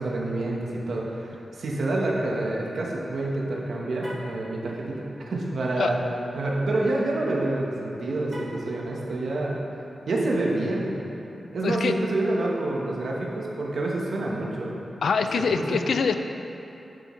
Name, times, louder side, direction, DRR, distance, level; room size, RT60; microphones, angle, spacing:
voice 1, 0.0-6.0 6.3-9.6 10.1-10.9 11.5-14.7 15.4-15.8, right 2 dB, 70° right, -3 dB, 1.2 m, -27 dB
Car, 3.9-4.4 8.2-8.7, equal, 10° right, 1.3 m, -41 dB
voice 2, 11.6-11.9 15.0-16.1, left 5 dB, 80° left, 8 dB, 0.4 m, -24 dB
10.0 x 6.9 x 3.2 m, 2.9 s
wide cardioid pair, 160°, 0 cm